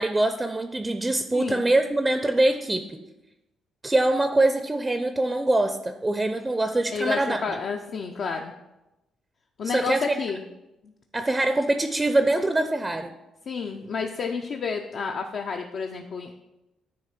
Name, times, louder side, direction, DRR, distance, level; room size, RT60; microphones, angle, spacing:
voice 1, 0.0-3.0 3.8-7.4 9.6-10.2 11.1-13.1, right 2 dB, 20° right, 8 dB, 0.5 m, -23 dB
voice 2, 6.9-8.5 9.6-10.4 13.5-16.3, left 5 dB, 60° left, 3 dB, 0.5 m, -30 dB
9.5 x 3.2 x 5.8 m, 0.96 s
cardioid pair, 90°, 0 cm